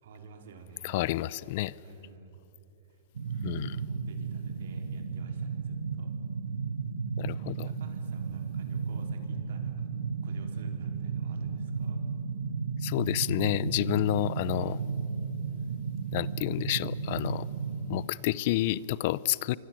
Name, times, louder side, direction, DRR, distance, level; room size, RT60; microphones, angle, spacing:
voice 1, 0.0-1.0 1.8-2.4 2.9-3.0 3.3-6.1 7.4-9.9 10.2-12.0, right 4 dB, 70° right, 4 dB, 4.3 m, -51 dB
voice 2, 0.8-1.7 3.4-3.8 7.2-7.7 12.8-14.8 16.1-17.5 17.9-19.6, left 16 dB, 50° left, 21 dB, 0.6 m, -29 dB
sound 1, 3.1-18.1, right 5 dB, 90° right, 1.2 m, -34 dB
26.5 x 23.5 x 7.7 m, 2.9 s
hypercardioid pair, 135°, 0 cm